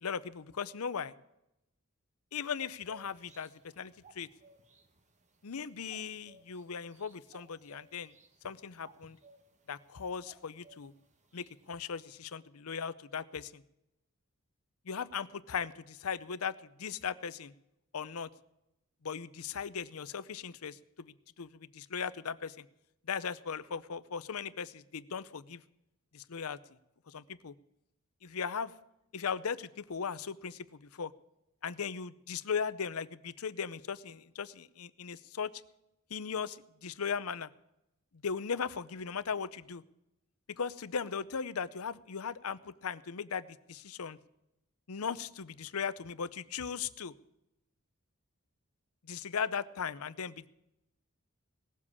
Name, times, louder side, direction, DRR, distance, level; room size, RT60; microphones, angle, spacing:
voice 1, 0.0-1.1 2.3-3.5 3.8-4.3 5.4-8.1 8.4-9.2 9.7-10.9 11.3-13.6 14.9-17.5 17.9-18.3 19.0-22.7 23.0-25.6 26.1-26.6 27.1-27.5 28.2-28.7 29.1-31.1 31.6-35.5 36.1-37.5 38.2-39.8 40.5-44.2 44.9-47.1 49.0-50.5, left 6 dB, 80° left, 16 dB, 0.7 m, -38 dB
sound 1, 2.3-12.2, right 2 dB, 30° right, 1.2 m, -62 dB
18.5 x 7.5 x 8.5 m, 0.89 s
head